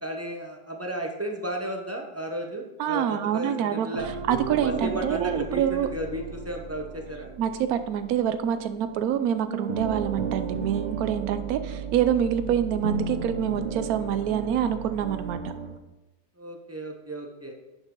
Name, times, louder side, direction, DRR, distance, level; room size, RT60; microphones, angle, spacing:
voice 1, 0.0-4.1 4.5-7.3 16.4-17.5, right 1 dB, 10° right, 1 dB, 0.7 m, -34 dB
voice 2, 2.8-3.9 4.3-5.9 7.4-15.5, right 9 dB, 65° right, 10 dB, 1.1 m, -26 dB
sound 1, 3.9-9.2 9.5-15.8, right 5 dB, 85° right, 0.4 m, -34 dB
10.5 x 6.2 x 3.8 m, 1.1 s
omnidirectional pair, 1.8 m